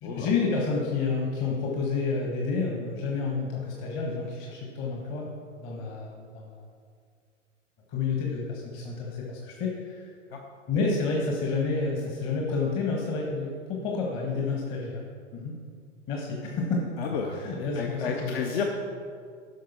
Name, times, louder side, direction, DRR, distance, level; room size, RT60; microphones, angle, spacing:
voice 1, 0.0-5.3 5.6-6.6 7.9-10.1 10.7-15.0 15.3-15.6 16.1-16.8 17.3-18.4, left 4 dB, 30° left, -1 dB, 1.4 m, -29 dB
voice 2, 17.0-18.6, left 6 dB, 55° left, 2 dB, 0.9 m, -31 dB
12.0 x 6.3 x 4.4 m, 2.1 s
figure-of-eight pair, 100°, 37 cm